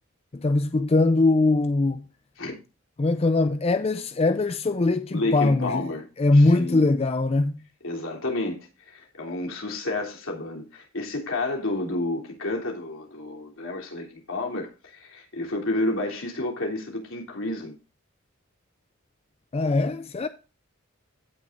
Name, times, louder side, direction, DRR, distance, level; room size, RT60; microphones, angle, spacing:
voice 1, 0.3-2.0 3.0-5.9 6.2-7.5 19.5-20.3, left 2 dB, 30° left, 0.4 m, -21 dB
voice 2, 5.1-6.0 6.3-6.8 7.8-8.6 8.9-17.7, left 2 dB, 70° left, 3.3 m, -30 dB
16.0 x 6.2 x 2.6 m
head